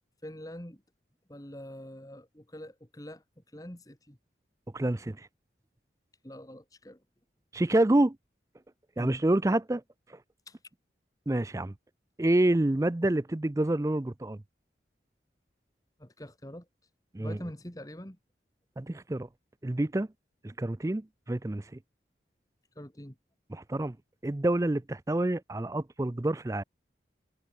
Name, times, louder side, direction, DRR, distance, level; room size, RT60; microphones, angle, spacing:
voice 1, 0.2-0.8 1.3-3.2 3.5-4.2 6.2-7.0 9.0-9.2 10.5-10.6 16.0-16.7 17.2-18.2 22.8-23.2, equal, 20° left, 2.3 m, -44 dB
voice 2, 4.7-5.3 7.5-8.2 9.0-9.8 10.1-10.2 11.3-11.7 12.2-14.4 17.1-17.4 18.8-19.3 19.6-20.1 20.4-21.7 23.5-24.0 24.2-26.6, right 1 dB, 15° right, 0.4 m, -27 dB
head